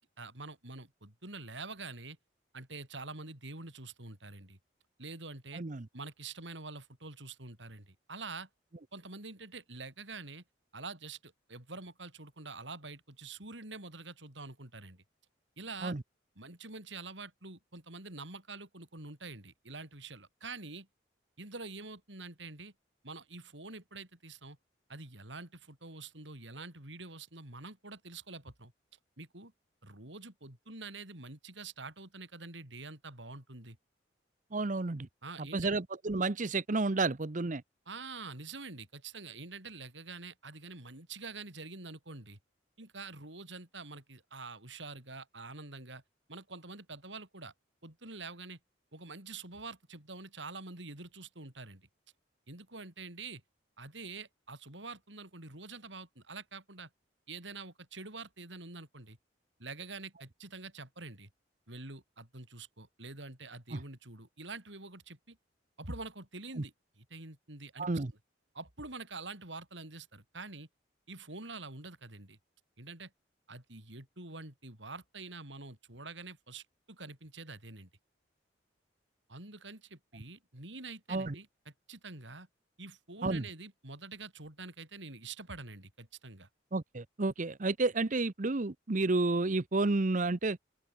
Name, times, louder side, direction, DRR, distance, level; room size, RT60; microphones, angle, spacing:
voice 1, 0.2-2.2 2.5-4.6 5.0-5.6 5.9-8.5 8.9-10.4 10.7-15.0 15.6-15.9 16.4-20.9 21.4-22.7 23.0-24.6 24.9-28.7 29.2-29.5 29.8-33.8 35.2-35.8 37.9-42.4 42.8-46.0 46.3-47.5 47.8-48.6 48.9-51.9 52.5-53.4 53.8-56.9 57.3-59.2 59.6-61.3 61.7-65.4 65.8-67.9 68.5-70.7 71.1-72.4 72.8-73.1 73.5-77.9 79.3-81.5 81.9-82.5 82.8-86.5, right 3 dB, 75° right, 6.1 m, -46 dB
voice 2, 5.5-5.9 15.8-16.0 34.5-35.1 35.4-37.6 63.7-63.8 66.6-66.7 67.8-68.1 81.1-81.4 83.2-83.5 86.7-90.6, right 3 dB, 45° right, 0.8 m, -31 dB
open air
head